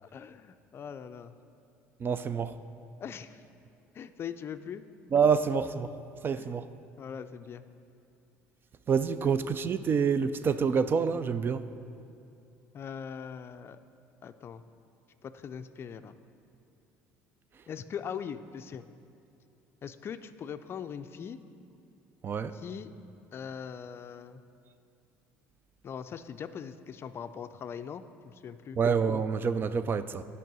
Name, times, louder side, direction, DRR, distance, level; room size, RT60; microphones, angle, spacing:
voice 1, 0.0-1.3 3.0-3.4 3.9-4.8 6.4-6.5 7.0-7.7 9.2-9.3 12.7-13.8 14.2-14.6 15.2-16.2 17.7-18.9 19.8-21.4 22.5-22.9 23.3-24.4 25.8-28.8, left 7 dB, 40° left, 11 dB, 0.4 m, -41 dB
voice 2, 2.0-2.5 5.1-5.9 6.2-6.7 8.9-11.6 22.2-22.5 28.8-30.2, right 6 dB, 35° right, 13 dB, 0.4 m, -27 dB
9.1 x 5.5 x 6.1 m, 2.6 s
supercardioid pair, 90°, 6 cm